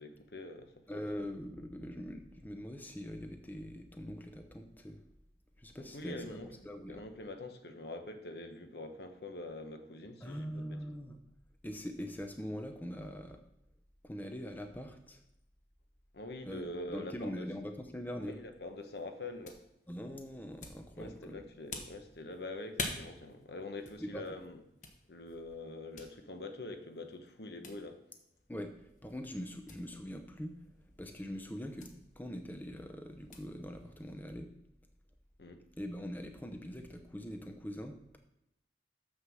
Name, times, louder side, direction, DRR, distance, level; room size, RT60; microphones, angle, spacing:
voice 1, 0.0-1.0 5.7-6.5 6.9-11.0 16.1-17.5 18.1-19.6 21.0-24.6 25.1-28.0 35.4-35.6, left 2 dB, 65° left, 7 dB, 1.0 m, -45 dB
voice 2, 0.9-5.0 5.6-7.0 10.2-11.2 11.6-13.4 14.0-15.2 16.5-18.4 19.9-21.4 24.0-24.2 28.5-30.6 31.0-34.5 35.8-38.2, equal, 10° left, 6 dB, 0.6 m, -43 dB
sound 1, 18.6-34.3, left 3 dB, 45° left, 1.2 m, -49 dB
7.3 x 6.4 x 6.2 m, 0.83 s
head